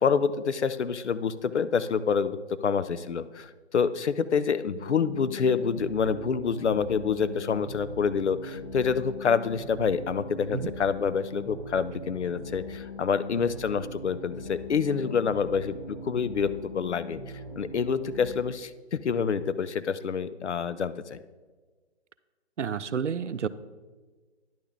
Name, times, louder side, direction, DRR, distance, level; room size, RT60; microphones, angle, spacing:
voice 1, 0.0-17.2 17.6-21.2, left 6 dB, 80° left, 14 dB, 0.5 m, -27 dB
sound 1, 4.7-18.3, left 1 dB, 50° left, 2.3 m, -41 dB
voice 2, 22.6-23.5, right 7 dB, 90° right, 15 dB, 0.5 m, -30 dB
10.0 x 6.5 x 3.3 m, 1.3 s
figure-of-eight pair, 140°, 35 cm